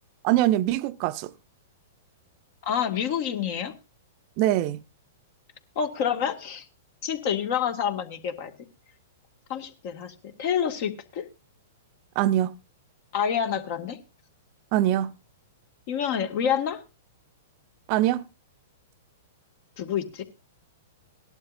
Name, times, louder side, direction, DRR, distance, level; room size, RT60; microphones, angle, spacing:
voice 1, 0.2-1.3 4.4-4.8 12.2-12.5 14.7-15.1 17.9-18.2, right 14 dB, 45° right, 0.6 m, -23 dB
voice 2, 2.6-3.7 5.8-6.7 7.0-8.5 9.5-11.3 13.1-14.0 15.9-16.8 19.8-20.2, left 8 dB, 55° left, 1.9 m, -28 dB
18.5 x 11.5 x 2.6 m
hypercardioid pair, 120°, 0 cm